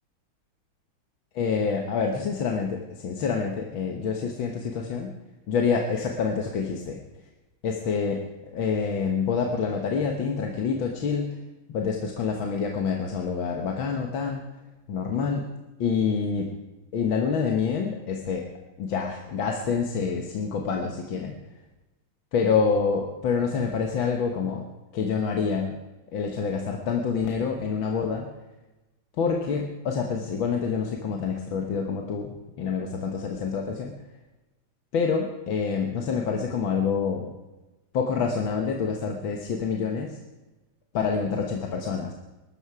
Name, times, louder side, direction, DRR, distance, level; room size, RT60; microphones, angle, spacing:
voice 1, 1.3-5.1 5.5-7.0 7.6-8.2 8.5-11.4 11.7-14.4 14.9-15.5 15.8-16.5 16.9-18.4 18.8-21.4 22.3-24.6 24.9-25.8 26.1-28.3 29.2-33.9 34.9-37.3 37.9-40.2 40.9-42.1, left 5 dB, 70° left, 2 dB, 2.0 m, -27 dB
20.0 x 12.5 x 4.8 m, 1.1 s
omnidirectional pair, 2.3 m